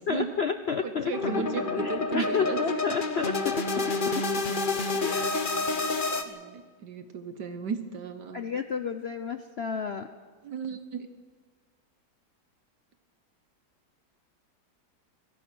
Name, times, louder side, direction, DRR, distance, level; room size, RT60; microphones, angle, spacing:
voice 1, 0.1-4.2 5.0-5.3 8.3-10.1, left 6 dB, 50° left, 9 dB, 0.8 m, -31 dB
voice 2, 0.8-2.8 6.3-8.4 10.4-11.1, right 6 dB, 70° right, 9 dB, 1.7 m, -35 dB
sound 1, 1.1-6.2, left 3 dB, 30° left, 1.3 m, -29 dB
25.0 x 17.5 x 6.2 m, 1.5 s
omnidirectional pair, 1.9 m